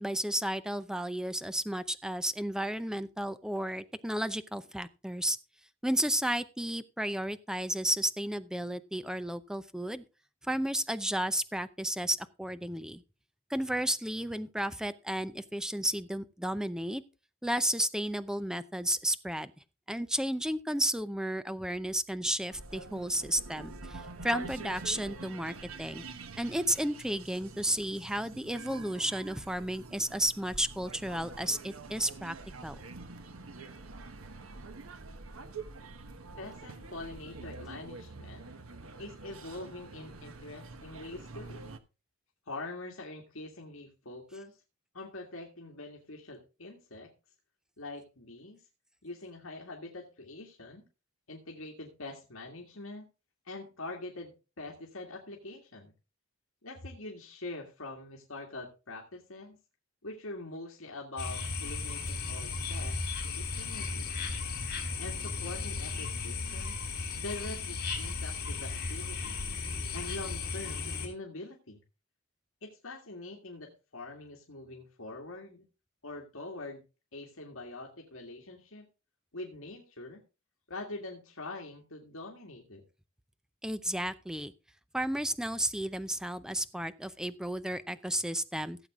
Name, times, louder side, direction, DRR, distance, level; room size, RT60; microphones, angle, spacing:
voice 1, 0.0-5.4 5.8-10.0 10.4-13.0 13.5-17.0 17.4-19.5 19.9-26.0 26.4-32.4 32.6-32.7 83.6-84.5 84.9-88.8, right 1 dB, 5° right, 13 dB, 0.6 m, -33 dB
sound 1, 22.5-41.8, right 3 dB, 85° right, 1.2 m, -46 dB
voice 2, 36.4-38.5 39.0-41.6 42.5-44.6 44.9-47.1 47.8-48.6 49.0-50.9 51.3-53.1 53.5-55.9 56.6-59.6 60.0-64.1 65.0-66.8 67.2-69.5 69.9-71.8 72.6-75.6 76.0-76.8 77.1-78.9 79.3-80.2 80.7-82.8, left 2 dB, 75° left, 0 dB, 2.1 m, -44 dB
sound 2, 61.2-71.1, left 4 dB, 50° left, 3.9 m, -35 dB
16.0 x 7.8 x 3.6 m, 0.31 s
head